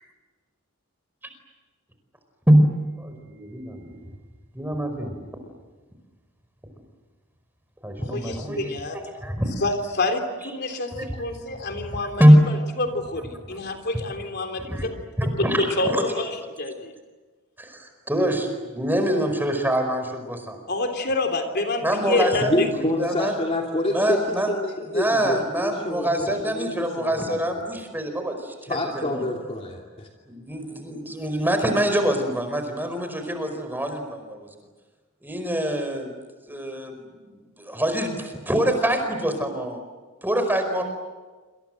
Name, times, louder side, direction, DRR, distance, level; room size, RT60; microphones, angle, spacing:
voice 1, 3.0-4.0 4.5-5.1 7.8-8.7 9.2-9.5 10.9-11.1 12.2-12.4 14.7-14.9 15.2-16.1 17.6-20.6 21.8-23.3 23.9-24.5 24.9-29.0 30.3-34.5 35.2-36.1 36.4-37.0 37.3-39.8 40.2-40.8, equal, 10° right, 6 dB, 4.8 m, -24 dB
voice 2, 8.0-9.0 9.6-14.9 15.6-16.9 20.7-22.9, left 2 dB, 50° left, 5 dB, 3.5 m, -27 dB
voice 3, 22.4-27.4 28.7-30.1, left 1 dB, 30° left, 0 dB, 2.9 m, -28 dB
27.5 x 27.0 x 7.8 m, 1.3 s
head